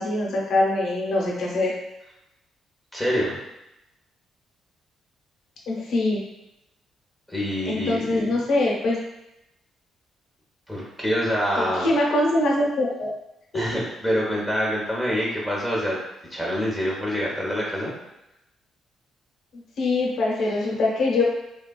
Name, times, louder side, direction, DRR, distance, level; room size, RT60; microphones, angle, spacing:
voice 1, 0.0-1.7 5.7-6.2 7.6-9.0 11.5-13.1 13.5-13.6 19.5-21.2, left 2 dB, 70° left, -3 dB, 0.8 m, -23 dB
voice 2, 2.9-3.4 7.3-8.3 10.7-11.9 13.5-16.0 16.3-17.9, equal, ahead, -4 dB, 1.0 m, -26 dB
3.4 x 2.3 x 2.3 m, 0.87 s
cardioid pair, 90°, 0 cm